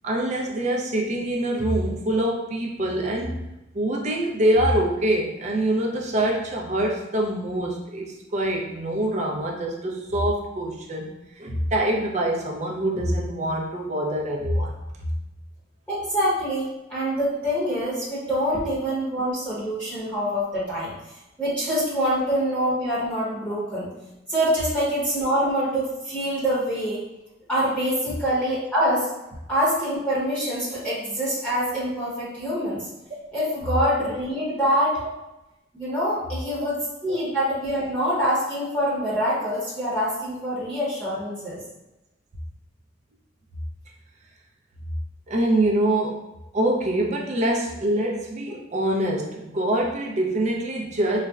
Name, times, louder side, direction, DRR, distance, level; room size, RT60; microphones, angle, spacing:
voice 1, 0.0-3.4 3.7-14.7 35.0-35.1 45.3-46.2 46.5-51.2, right 1 dB, 40° right, 0 dB, 0.5 m, -25 dB
voice 2, 15.9-20.9 21.4-23.9 24.3-27.0 27.5-29.1 29.5-32.8 33.3-35.0 35.7-41.6, equal, 10° left, -10 dB, 1.0 m, -25 dB
4.0 x 2.1 x 2.4 m, 0.96 s
head